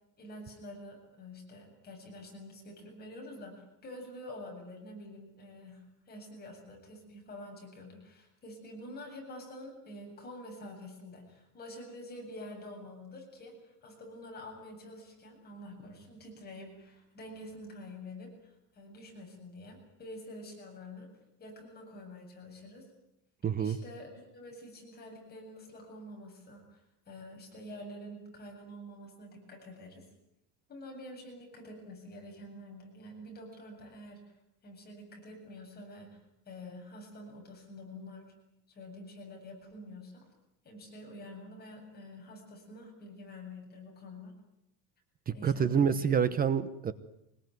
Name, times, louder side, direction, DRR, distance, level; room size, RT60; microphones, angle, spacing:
voice 1, 0.2-21.1 21.4-22.9 23.6-30.0 30.7-34.2 34.6-36.2 36.5-38.3 38.7-40.2 40.6-44.3 45.3-45.9, left 1 dB, 25° left, 0 dB, 7.9 m, -47 dB
voice 2, 23.4-23.8 45.3-46.9, right 7 dB, 20° right, 14 dB, 1.0 m, -27 dB
25.5 x 21.0 x 9.5 m, 0.82 s
cardioid pair, 160°, 39 cm